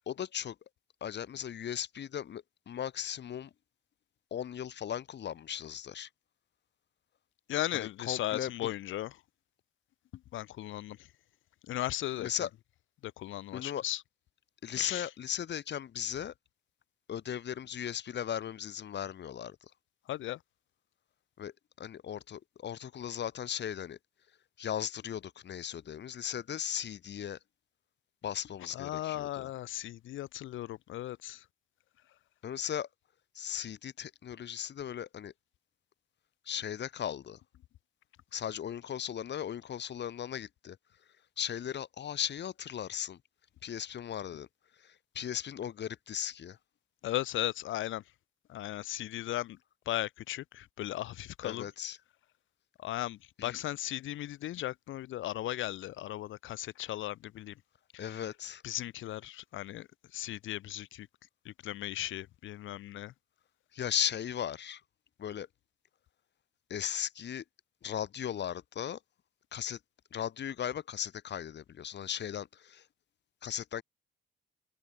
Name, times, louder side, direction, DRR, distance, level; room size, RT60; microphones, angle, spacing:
voice 1, 0.1-0.5 1.0-3.5 4.3-6.1 7.7-8.7 12.2-12.5 13.5-13.8 14.6-16.3 17.1-19.7 21.4-21.5 21.8-24.0 24.6-27.4 28.2-29.5 32.4-32.9 33.3-35.3 36.4-37.4 38.3-40.8 41.4-43.2 43.6-44.5 44.8-46.6 51.4-52.0 53.4-53.6 58.0-58.6 63.7-64.8 65.2-65.5 66.7-67.4 67.8-69.0 69.5-69.8 70.1-72.9 73.4-73.8, left 9 dB, 60° left, 4.6 m, -37 dB
voice 2, 7.5-9.2 10.1-11.1 11.6-12.3 13.0-14.0 14.7-15.1 20.0-20.4 28.7-31.4 47.0-48.0 48.5-49.6 49.8-51.7 52.8-57.6 57.9-58.2 58.6-61.1 61.4-63.1, left 14 dB, 80° left, 1.6 m, -37 dB
cardioid pair, 90°, 20 cm